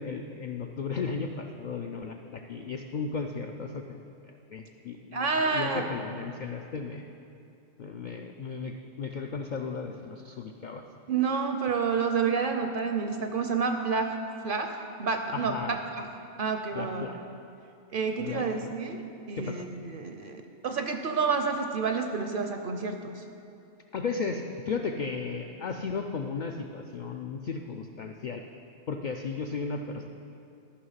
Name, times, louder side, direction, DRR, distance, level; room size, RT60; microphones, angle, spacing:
voice 1, 0.0-4.0 4.3-7.0 7.8-10.8 15.3-15.8 16.8-17.2 18.2-18.8 19.4-19.6 23.9-28.4 28.9-30.1, left 5 dB, 75° left, 4 dB, 0.4 m, -35 dB
voice 2, 5.1-5.9 11.1-14.2 14.4-16.1 16.4-17.1 17.9-23.2, right 5 dB, 60° right, 5 dB, 0.6 m, -29 dB
13.0 x 5.7 x 5.6 m, 2.6 s
omnidirectional pair, 1.3 m